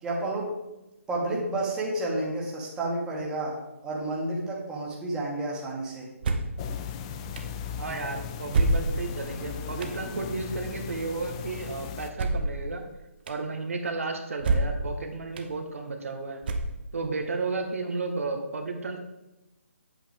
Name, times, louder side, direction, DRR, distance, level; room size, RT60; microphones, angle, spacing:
voice 1, 0.0-0.5 1.1-3.6 3.8-6.1, right 2 dB, 10° right, -4 dB, 1.8 m, -30 dB
sound 1, 6.2-6.6 7.4-7.5 8.5-9.2 9.8-10.0 12.1-12.6 13.3-13.4 14.4-14.9 15.4-15.5 16.4-17.0, right 2 dB, 40° right, 0.9 m, -26 dB
sound 2, 6.6-12.1, left 7 dB, 25° left, 0.5 m, -37 dB
voice 2, 7.8-12.8 13.3-16.4 16.9-19.0, right 3 dB, 70° right, 3 dB, 1.5 m, -33 dB
8.2 x 7.9 x 3.5 m, 1.0 s
figure-of-eight pair, 150°, 8 cm